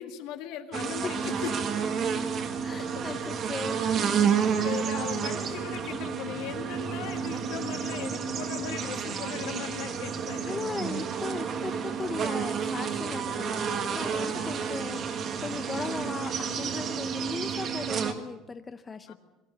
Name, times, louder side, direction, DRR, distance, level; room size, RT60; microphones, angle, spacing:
voice 1, 0.0-1.6 2.9-3.0 4.2-10.6 14.1-14.6 19.1-19.2, left 10 dB, 70° left, 6 dB, 2.0 m, -38 dB
sound 1, 0.7-18.1, right 7 dB, 35° right, 1.7 m, -30 dB
voice 2, 1.0-1.3 2.6-4.6 10.5-19.1, left 4 dB, 15° left, 9 dB, 0.7 m, -38 dB
22.5 x 14.0 x 8.5 m, 1.1 s
cardioid pair, 150°, 0 cm